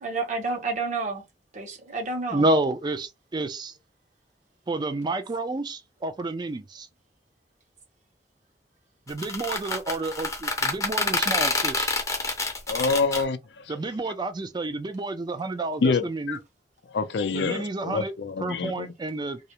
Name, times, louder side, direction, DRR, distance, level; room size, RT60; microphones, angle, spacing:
voice 1, 0.0-1.2 1.5-2.5, right 3 dB, 45° right, 0.8 m, -30 dB
voice 2, 2.3-3.7 4.7-6.9 9.1-11.9 13.7-16.4 17.3-18.1 18.4-19.4, right 2 dB, 25° right, 0.4 m, -29 dB
open old squeaky door, 9.1-13.2, left 3 dB, 20° left, 0.6 m, -27 dB
voice 3, 12.7-13.8 15.8-16.0 16.3-16.4 16.9-18.9, left 4 dB, 70° left, 0.4 m, -26 dB
2.4 x 2.0 x 2.9 m
head